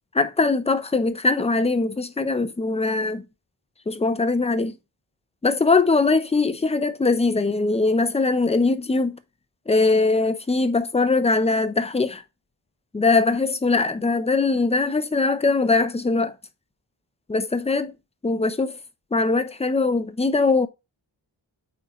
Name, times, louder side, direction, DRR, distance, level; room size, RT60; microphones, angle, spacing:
voice 1, 0.1-3.2 3.9-4.8 5.4-9.2 9.7-12.2 12.9-16.3 17.3-17.9 18.2-18.8 19.1-20.7, left 3 dB, 15° left, 0.5 m, -21 dB
8.8 x 3.8 x 3.0 m
wide cardioid pair, 125°, 45 cm